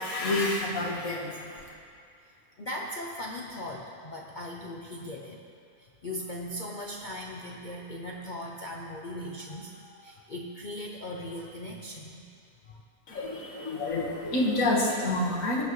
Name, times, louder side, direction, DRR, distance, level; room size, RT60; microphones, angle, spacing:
voice 1, 0.0-1.3 13.1-15.6, left 2 dB, 65° left, -2 dB, 2.0 m, -28 dB
voice 2, 2.6-5.4 5.8-12.3 12.7-12.8, left 1 dB, 45° left, -1 dB, 0.7 m, -39 dB
19.5 x 8.3 x 3.2 m, 2.3 s
omnidirectional pair, 1.5 m